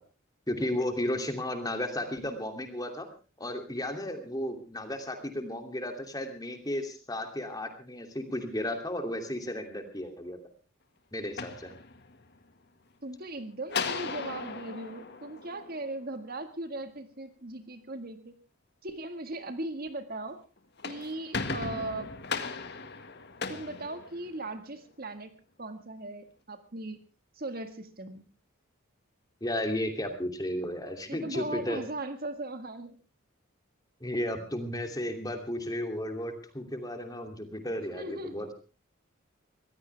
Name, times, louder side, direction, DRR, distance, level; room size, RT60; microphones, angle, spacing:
voice 1, 0.5-3.1 3.4-10.4 11.1-11.8 29.4-31.8 34.0-38.5, left 1 dB, 20° left, 5 dB, 2.8 m, -34 dB
sound 1, 11.2-12.4 13.7-16.2 20.6-24.7, left 4 dB, 50° left, 1.8 m, -37 dB
voice 2, 13.0-18.3 18.8-20.4 20.8-22.1 23.5-27.0 27.4-28.2 31.1-33.0 37.9-38.5, right 2 dB, 45° right, 9 dB, 1.7 m, -38 dB
23.5 x 16.0 x 3.4 m, 0.34 s
head